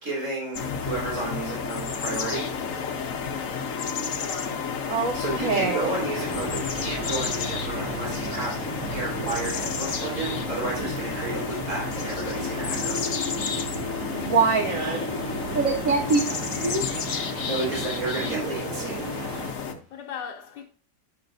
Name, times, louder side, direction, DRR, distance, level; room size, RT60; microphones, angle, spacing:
voice 1, 0.0-2.5 5.1-13.0 17.4-19.0, right 2 dB, 40° right, 3.9 m, -32 dB
sound 1, 0.5-19.7, left 6 dB, 55° left, 1.1 m, -31 dB
voice 2, 4.2-5.0 19.9-20.6, left 7 dB, 75° left, 1.4 m, -40 dB
voice 3, 4.9-5.9 14.1-15.1 15.5-16.2 16.6-16.8, right 4 dB, 60° right, 0.9 m, -24 dB
sound 2, 6.1-19.5, right 6 dB, 90° right, 1.4 m, -36 dB
11.0 x 6.1 x 2.6 m
omnidirectional pair, 2.0 m